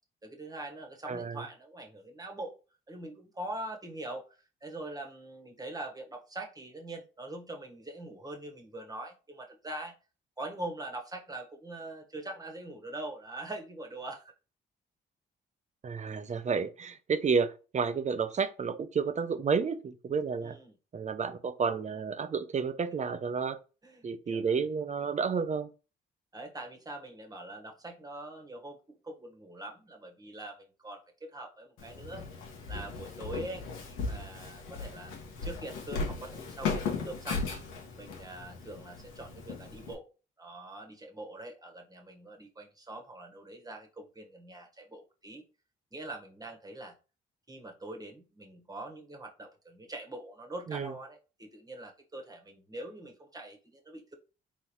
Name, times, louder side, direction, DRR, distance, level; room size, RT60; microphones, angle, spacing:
voice 1, 0.2-2.5 2.9-9.9 10.4-14.3 20.4-20.7 23.8-24.7 26.3-32.2 32.7-35.1 35.4-37.4 38.0-40.1 40.4-45.4 45.9-46.9 47.5-54.1, right 2 dB, 20° right, 1.3 m, -43 dB
voice 2, 15.8-20.6 20.9-23.6 24.0-25.7 50.7-50.9, right 5 dB, 35° right, 0.6 m, -31 dB
Walk footsteps, 31.8-39.9, left 4 dB, 90° left, 1.4 m, -37 dB
4.1 x 3.9 x 3.1 m
cardioid pair, 90°, 20 cm